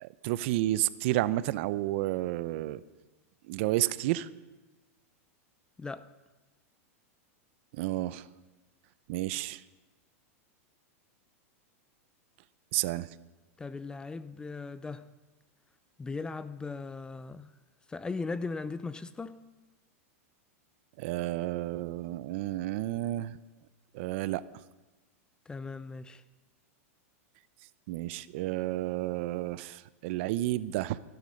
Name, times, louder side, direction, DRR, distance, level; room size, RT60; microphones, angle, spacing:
voice 1, 0.0-2.8 3.5-4.3 7.7-8.3 9.1-9.6 12.7-13.1 21.0-23.4 23.9-24.4 27.9-31.0, right 16 dB, 55° right, 0.6 m, -31 dB
voice 2, 13.6-15.1 16.0-17.5 17.9-19.4 25.5-26.2, left 4 dB, 10° left, 0.5 m, -38 dB
16.0 x 11.5 x 6.4 m
supercardioid pair, 140°, 8 cm